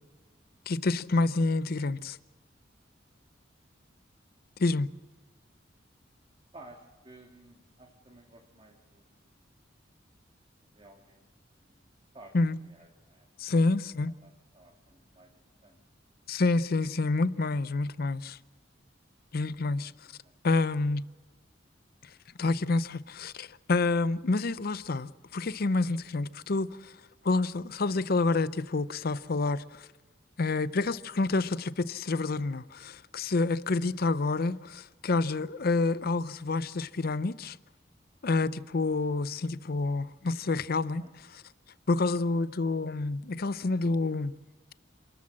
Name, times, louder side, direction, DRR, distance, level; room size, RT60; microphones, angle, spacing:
voice 1, 0.7-2.2 4.6-4.9 12.3-12.6 13.4-14.1 16.3-18.4 19.3-19.9 20.4-21.0 22.4-26.9 27.2-29.9 30.4-37.6 38.2-41.0 41.3-41.4 41.9-44.3, left 3 dB, 50° left, 0.6 m, -28 dB
voice 2, 6.5-9.5 10.6-11.2 11.5-12.3 12.6-13.3 14.0-15.8 20.0-20.3 41.0-41.1 42.1-42.4, right 2 dB, 30° right, 1.9 m, -55 dB
27.5 x 14.0 x 7.5 m
head